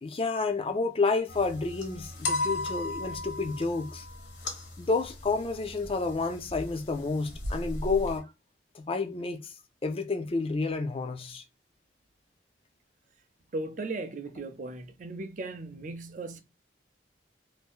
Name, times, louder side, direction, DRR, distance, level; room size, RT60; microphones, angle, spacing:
voice 1, 0.0-4.1 4.8-8.3 8.7-9.5 9.8-11.4, left 3 dB, 30° left, 0.4 m, -30 dB
Creepy Music Box, 1.3-8.2, left 2 dB, 70° left, 1.0 m, -36 dB
voice 2, 13.5-16.4, right 2 dB, 45° right, 0.4 m, -37 dB
2.6 x 2.6 x 3.5 m
head